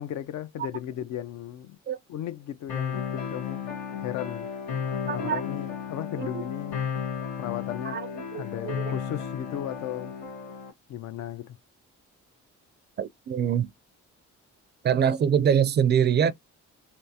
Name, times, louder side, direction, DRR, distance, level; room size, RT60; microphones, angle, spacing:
voice 1, 0.0-1.8 2.1-3.6 4.0-4.5 5.0-6.8 7.4-8.0 8.3-10.1 10.9-11.6, left 11 dB, 70° left, 0.5 m, -35 dB
sound 1, 2.7-10.7, left 7 dB, 90° left, 1.6 m, -34 dB
voice 2, 5.1-5.4 6.2-6.4 7.8-8.9 13.0-13.7 14.8-16.3, right 8 dB, 35° right, 0.4 m, -24 dB
3.4 x 2.6 x 2.8 m
cardioid pair, 90°, 30 cm